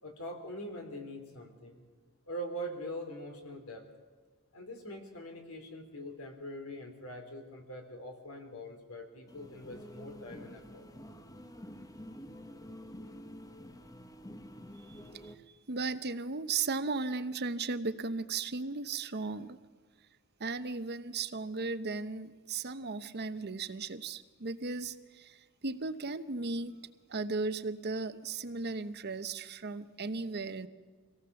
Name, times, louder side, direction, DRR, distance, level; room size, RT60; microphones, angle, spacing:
voice 1, 0.0-1.8 2.3-3.8 4.5-10.9, equal, 80° left, 4 dB, 3.8 m, -43 dB
sound 1, 9.3-15.4, equal, 15° left, 1.0 m, -48 dB
voice 2, 14.9-15.3 15.7-19.6 20.4-26.8 27.1-30.7, right 4 dB, 50° right, 11 dB, 0.9 m, -36 dB
24.5 x 18.0 x 7.0 m, 1.5 s
head